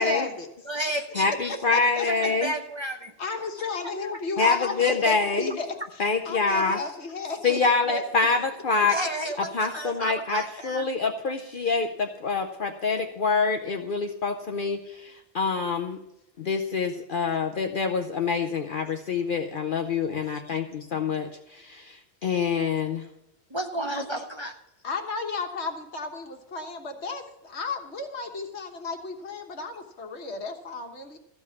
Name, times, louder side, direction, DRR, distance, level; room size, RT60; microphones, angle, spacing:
voice 1, 0.0-0.5 1.3-2.3 3.2-5.8 6.2-7.6 7.9-8.0 10.0-10.1 20.6-20.8 23.9-24.0 24.8-31.2, left 4 dB, 70° left, 4 dB, 1.5 m, -33 dB
voice 2, 0.6-1.6 2.0-3.1 8.9-10.9 20.1-20.6 23.5-24.5, right 1 dB, 25° right, 3 dB, 0.8 m, -32 dB
voice 3, 1.2-2.5 4.4-5.5 6.0-6.8 7.4-8.9 9.5-16.0 16.4-22.0 22.2-23.0, left 4 dB, 55° left, 4 dB, 0.8 m, -26 dB
14.0 x 5.4 x 8.2 m, 0.84 s
omnidirectional pair, 1.2 m